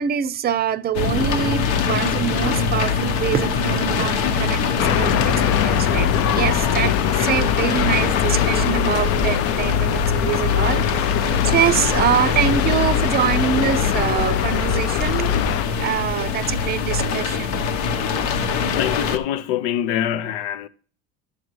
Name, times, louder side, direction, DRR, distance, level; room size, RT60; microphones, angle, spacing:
voice 1, 0.0-4.6 5.0-15.3 15.8-17.6, right 9 dB, 30° right, 0.5 m, -24 dB
sound 1, 0.9-19.2, left 5 dB, 70° left, 1.0 m, -23 dB
sound 2, 4.8-15.6, left 11 dB, 50° left, 0.5 m, -23 dB
voice 2, 18.7-20.7, left 11 dB, 90° left, 0.7 m, -24 dB
11.5 x 6.5 x 3.1 m
cardioid pair, 130°, 30 cm